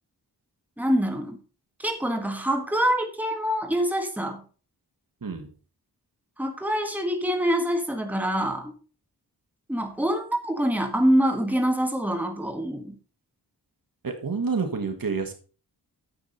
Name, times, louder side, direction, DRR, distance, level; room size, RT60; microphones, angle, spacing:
voice 1, 0.8-1.4 1.8-4.4 6.4-8.7 9.7-12.9, equal, 5° right, 4 dB, 1.7 m, -25 dB
voice 2, 14.0-15.3, right 5 dB, 60° right, 5 dB, 1.8 m, -28 dB
10.0 x 7.5 x 4.2 m, 0.37 s
wide cardioid pair, 90°, 40 cm